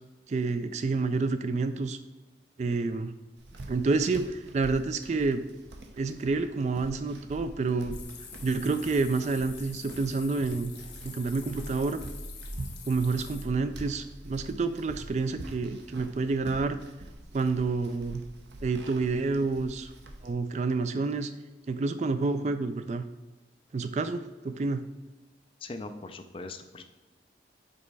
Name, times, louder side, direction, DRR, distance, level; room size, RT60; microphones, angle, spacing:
voice 1, 0.3-2.0 2.6-3.1 3.7-5.4 5.9-8.0 8.4-10.7 11.0-12.0 12.9-16.8 17.3-18.2 18.6-19.9 20.2-21.3 21.7-23.0 23.7-24.8, right 3 dB, 40° right, 10 dB, 0.3 m, -28 dB
sound 1, 3.4-20.3, right 1 dB, 80° right, 0.8 m, -44 dB
sound 2, 7.9-13.4, left 7 dB, 85° left, 1.0 m, -47 dB
voice 2, 25.6-26.8, left 3 dB, 30° left, 7 dB, 0.4 m, -40 dB
5.3 x 4.1 x 4.6 m, 1.1 s
head